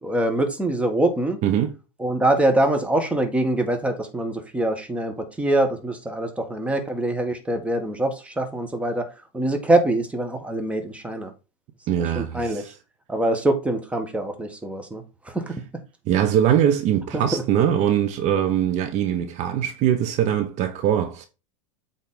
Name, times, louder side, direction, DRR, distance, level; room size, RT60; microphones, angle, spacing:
voice 1, 0.0-1.4 2.0-9.1 9.3-11.3 12.1-12.6 13.1-15.6 17.1-17.4, right 1 dB, 5° right, 1.7 m, -24 dB
voice 2, 1.4-1.7 11.9-12.7 16.1-21.3, right 10 dB, 45° right, 1.1 m, -22 dB
8.1 x 4.2 x 3.9 m
hypercardioid pair, 110°, 17 cm